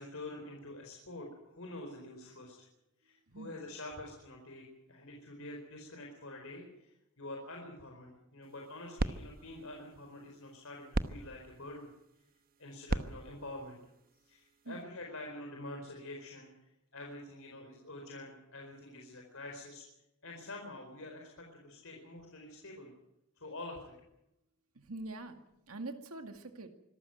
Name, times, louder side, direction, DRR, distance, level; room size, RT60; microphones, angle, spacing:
voice 1, 0.0-2.7 3.0-11.9 12.6-13.8 14.2-19.8 20.2-22.9 23.4-23.9, left 2 dB, 65° left, 1 dB, 4.6 m, -47 dB
voice 2, 3.3-3.7 14.6-14.8 24.8-26.7, right 2 dB, 80° right, 6 dB, 2.0 m, -44 dB
sound 1, 8.4-14.8, right 2 dB, 40° right, 1.0 m, -41 dB
25.5 x 14.0 x 9.1 m, 0.86 s
head